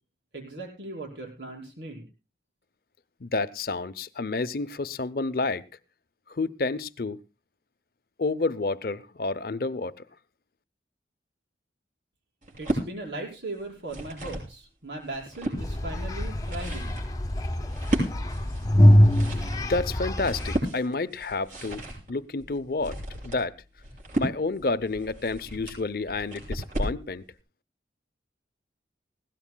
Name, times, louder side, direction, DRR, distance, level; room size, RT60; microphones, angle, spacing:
voice 1, 0.3-2.0 12.6-17.0, right 2 dB, 90° right, -1 dB, 5.4 m, -38 dB
voice 2, 3.2-5.6 6.3-7.2 8.2-10.0 19.7-21.8 22.1-23.5 24.2-27.2, left 3 dB, 55° left, 15 dB, 0.6 m, -29 dB
sound 1, 12.4-12.9 13.6-14.5 15.0-15.6 16.2-27.0, right 1 dB, 45° right, 6.5 m, -34 dB
sound 2, 15.6-20.6, equal, 20° left, 0.9 m, -23 dB
20.0 x 16.5 x 2.2 m, 0.32 s
head